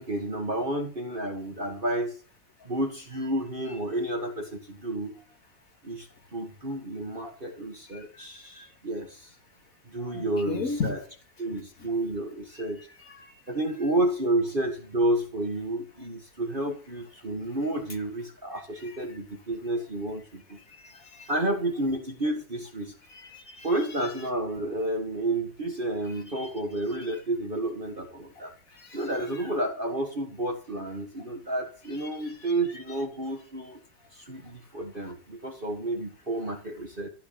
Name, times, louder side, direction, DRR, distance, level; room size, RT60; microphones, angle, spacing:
voice 1, 0.0-2.2 2.6-5.2 5.8-9.3 9.9-11.0 11.4-12.9 13.5-20.6 21.3-23.0 23.6-28.5 28.9-33.8 34.1-37.1, right 1 dB, 30° right, 3 dB, 1.8 m, -30 dB
voice 2, 10.0-10.9 11.5-11.6 13.1-13.4 20.8-21.3 23.1-23.7 26.3-26.5 28.8-29.0 31.2-31.3 32.4-32.5, left 4 dB, 50° left, 4 dB, 2.8 m, -36 dB
15.0 x 4.9 x 8.5 m, 0.37 s
omnidirectional pair, 1.9 m